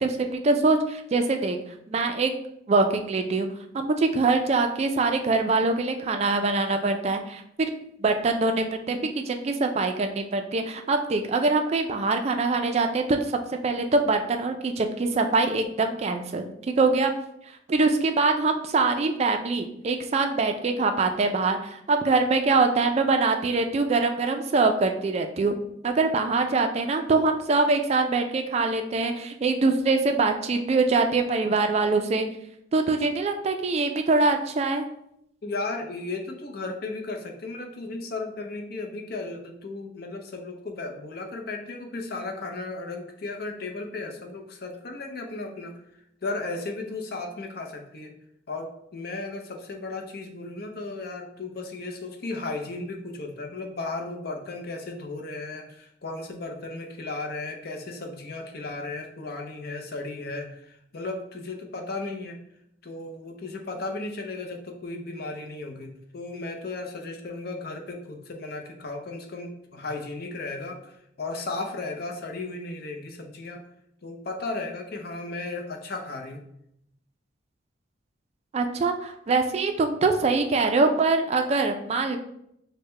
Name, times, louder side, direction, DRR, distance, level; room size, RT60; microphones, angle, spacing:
voice 1, 0.0-1.6 1.9-2.3 2.7-3.5 3.7-7.7 8.0-16.5 16.8-17.1 17.7-25.5 25.8-32.3 32.7-34.9 78.5-82.2, right 3 dB, 35° right, 6 dB, 0.3 m, -23 dB
voice 2, 35.4-45.7 46.2-48.1 48.5-62.4 62.8-73.6 74.0-76.4, left 3 dB, 55° left, 4 dB, 0.6 m, -35 dB
6.3 x 2.1 x 3.2 m, 0.76 s
head